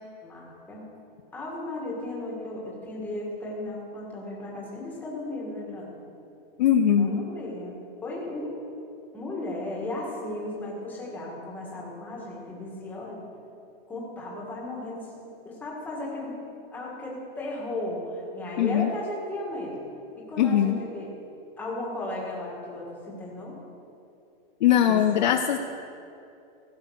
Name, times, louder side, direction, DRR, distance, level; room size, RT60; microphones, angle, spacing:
voice 1, 0.2-0.8 1.3-5.9 7.0-8.6 9.1-13.2 13.9-16.4 16.7-19.8 20.1-21.1 21.6-23.6 24.7-25.3, left 1 dB, 5° left, -4 dB, 1.8 m, -35 dB
voice 2, 6.6-7.2 18.6-18.9 20.4-20.8 24.6-25.6, left 9 dB, 50° left, 6 dB, 0.5 m, -21 dB
16.0 x 8.3 x 6.4 m, 2.7 s
supercardioid pair, 180°, 30 cm